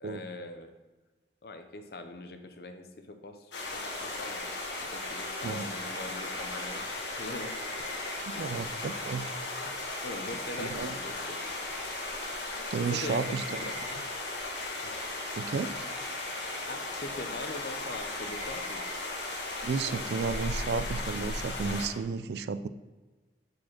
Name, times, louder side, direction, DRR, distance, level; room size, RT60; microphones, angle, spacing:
voice 1, 0.0-0.7 1.4-4.5 4.8-6.9 7.2-8.9 9.6-11.4 12.8-13.3 13.7-13.8 14.8-14.9 16.7-18.9, left 2 dB, 60° left, 7 dB, 0.6 m, -42 dB
sound 1, 3.5-21.9, left 2 dB, 90° left, 1.2 m, -36 dB
sound 2, 4.6-21.5, right 1 dB, 35° right, 1.1 m, -48 dB
voice 2, 8.4-9.3 10.6-10.9 12.7-13.6 15.4-15.7 19.6-22.7, right 5 dB, 70° right, 14 dB, 0.3 m, -32 dB
4.9 x 4.8 x 5.8 m, 1.2 s
head